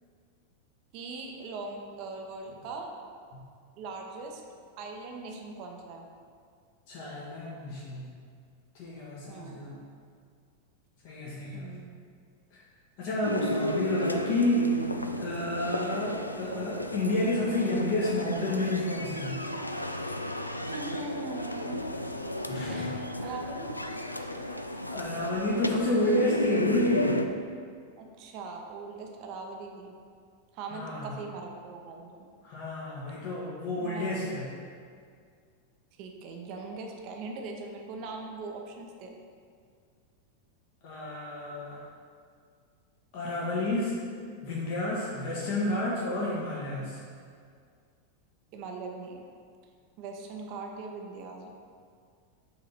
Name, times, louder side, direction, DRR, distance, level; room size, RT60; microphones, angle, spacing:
voice 1, 0.9-2.9 3.8-4.4 4.8-6.1 9.3-9.7 11.5-12.0 13.7-13.8 20.6-22.2 22.7-22.9 23.2-23.8 28.0-29.9 30.5-32.2 33.8-34.4 36.0-39.1 48.5-49.3 50.0-51.5, right 3 dB, 45° right, 2 dB, 0.8 m, -41 dB
voice 2, 6.9-8.1 8.7-9.8 11.0-11.7 13.0-14.7 15.2-19.4 22.5-22.9 23.2-23.3 24.9-27.2 30.7-31.1 32.4-34.5 40.8-41.8 43.1-44.0 44.4-47.0, left 1 dB, 45° left, -5 dB, 1.2 m, -30 dB
sound 1, 13.2-27.3, left 1 dB, 85° left, 0.3 m, -33 dB
5.9 x 3.9 x 5.6 m, 2.1 s
figure-of-eight pair, 90°, 0 cm